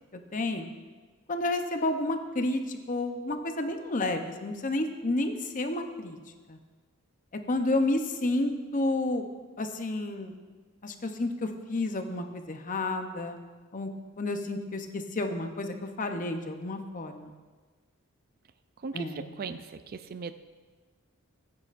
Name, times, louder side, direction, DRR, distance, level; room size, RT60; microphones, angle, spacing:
voice 1, 0.1-0.7 1.3-6.2 6.5-6.6 7.5-9.2 9.6-10.3 10.8-13.4 13.7-13.9 14.2-17.3 18.9-19.2, left 2 dB, 35° left, 6 dB, 0.7 m, -30 dB
voice 2, 18.8-20.3, right 5 dB, 45° right, 11 dB, 0.4 m, -38 dB
15.0 x 9.5 x 2.6 m, 1.4 s
head